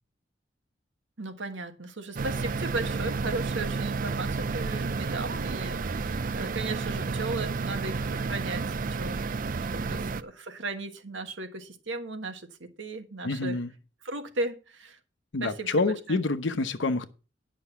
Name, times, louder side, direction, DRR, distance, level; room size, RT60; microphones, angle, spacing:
voice 1, 1.2-9.2 9.7-13.6 14.0-15.0 15.4-16.2, right 2 dB, 85° right, 1.5 m, -36 dB
sound 1, 2.2-10.2, right 4 dB, 50° right, 0.5 m, -31 dB
voice 2, 13.2-13.7 15.3-17.1, left 3 dB, 85° left, 0.9 m, -27 dB
10.0 x 6.1 x 5.8 m
head